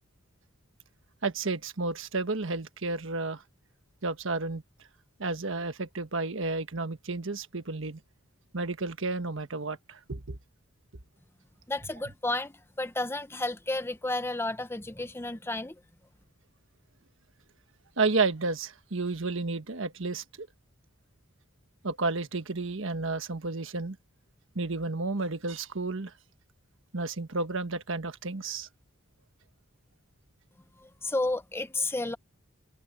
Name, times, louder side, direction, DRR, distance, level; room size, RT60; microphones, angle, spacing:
voice 1, 1.2-3.4 4.0-4.6 5.2-8.0 8.5-10.4 18.0-20.5 21.8-24.0 24.5-26.1 26.9-28.7, right 3 dB, 65° right, 1.4 m, -31 dB
voice 2, 11.7-15.7 30.8-32.2, left 2 dB, 10° left, 0.7 m, -32 dB
head